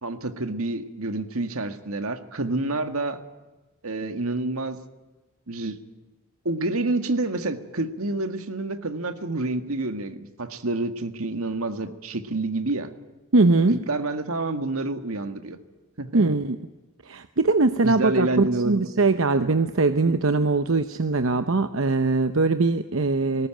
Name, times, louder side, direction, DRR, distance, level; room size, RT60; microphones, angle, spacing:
voice 1, 0.0-3.2 3.8-4.8 5.5-5.8 6.5-12.9 13.7-15.6 16.0-16.4 17.8-18.9 20.1-20.2, right 2 dB, 85° right, 8 dB, 1.9 m, -28 dB
voice 2, 13.3-13.8 16.1-16.6 17.1-23.5, right 3 dB, 70° right, 10 dB, 0.9 m, -21 dB
19.5 x 19.0 x 9.1 m, 1.1 s
head